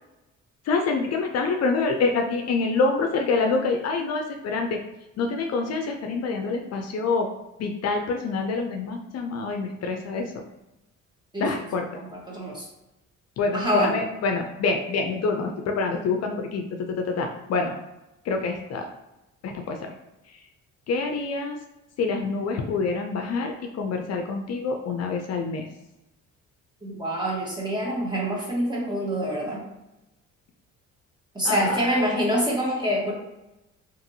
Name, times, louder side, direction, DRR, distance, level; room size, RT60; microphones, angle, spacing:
voice 1, 0.7-4.8 5.2-7.3 7.6-10.4 11.4-11.9 13.4-16.6 17.0-17.7 18.3-18.9 19.4-19.9 20.9-21.6 22.0-25.7 31.4-31.8, left 4 dB, 60° left, 4 dB, 0.4 m, -26 dB
voice 2, 12.0-12.7 13.5-13.9 26.8-29.6 31.3-33.1, equal, 15° right, -4 dB, 1.2 m, -26 dB
2.9 x 2.6 x 2.6 m, 0.95 s
cardioid pair, 90°, 30 cm